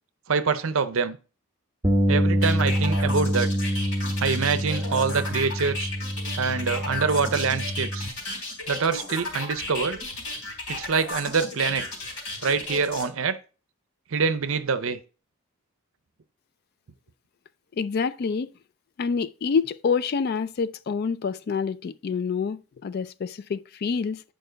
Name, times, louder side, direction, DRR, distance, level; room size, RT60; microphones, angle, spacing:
voice 1, 0.3-1.2 2.1-3.5 4.2-5.9 6.4-8.1 8.7-10.0 10.7-11.8 12.4-13.4 14.1-15.0, right 5 dB, 60° right, 0.6 m, -25 dB
Bass guitar, 1.8-8.1, equal, 15° right, 0.9 m, -26 dB
sound 1, 2.4-13.0, left 2 dB, 85° left, 4.0 m, -34 dB
voice 2, 17.8-18.5 19.0-24.2, left 5 dB, 45° left, 0.3 m, -27 dB
9.0 x 5.3 x 3.9 m
head